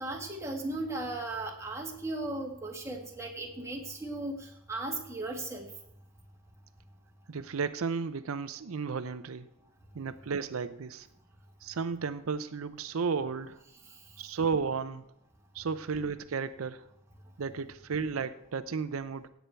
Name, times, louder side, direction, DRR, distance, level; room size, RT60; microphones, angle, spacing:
voice 1, 0.0-5.7, right 2 dB, 15° right, 0 dB, 1.9 m, -36 dB
voice 2, 7.3-9.5 9.9-11.1 11.6-13.6 14.2-15.0 15.5-16.9 17.4-19.3, right 5 dB, 80° right, 11 dB, 0.6 m, -33 dB
17.0 x 8.1 x 4.5 m, 0.76 s
head